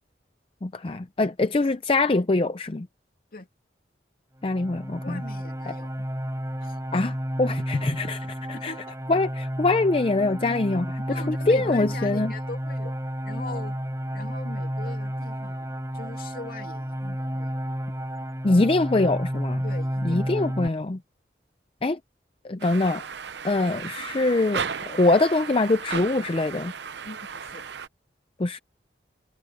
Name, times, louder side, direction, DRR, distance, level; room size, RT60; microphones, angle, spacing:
voice 1, 0.6-2.9 4.4-5.2 5.7-5.8 6.9-7.1 7.4-8.3 8.6-8.7 9.1-12.3 18.4-19.6 20.0-21.0 21.8-22.0 22.4-23.0 23.4-26.7 28.4-28.6, left 2 dB, 30° left, 0.5 m, -23 dB
sound 1, 4.4-20.7, equal, 15° right, 4.1 m, -31 dB
voice 2, 5.0-6.1 6.6-7.1 8.5-9.0 11.1-13.0 13.2-13.8 14.1-17.6 19.6-20.5 27.0-27.6, left 2 dB, 55° left, 2.8 m, -40 dB
sound 2, 22.6-27.9, right 6 dB, 80° right, 0.8 m, -35 dB
head